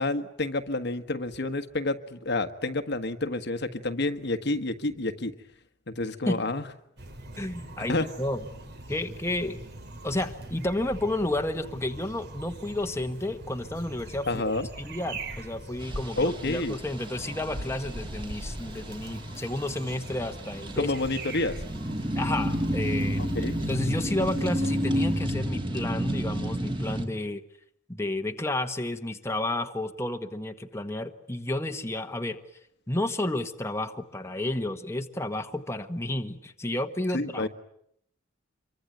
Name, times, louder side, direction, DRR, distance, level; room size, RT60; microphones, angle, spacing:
voice 1, 0.0-5.3 5.9-6.6 7.9-8.1 14.3-14.7 16.2-16.7 20.8-21.5 23.3-23.6 37.1-37.5, left 2 dB, 60° left, 9 dB, 1.5 m, -29 dB
sound 1, 7.0-25.2, right 1 dB, 60° right, 3.3 m, -42 dB
voice 2, 7.4-8.4 8.9-9.6 10.0-14.3 14.8-20.9 22.1-23.3 23.7-27.4 27.9-32.4 32.9-37.5, left 1 dB, 15° left, 5 dB, 1.4 m, -31 dB
sound 2, 15.8-27.1, equal, 25° right, 2.9 m, -31 dB
26.5 x 23.5 x 9.3 m, 0.73 s
head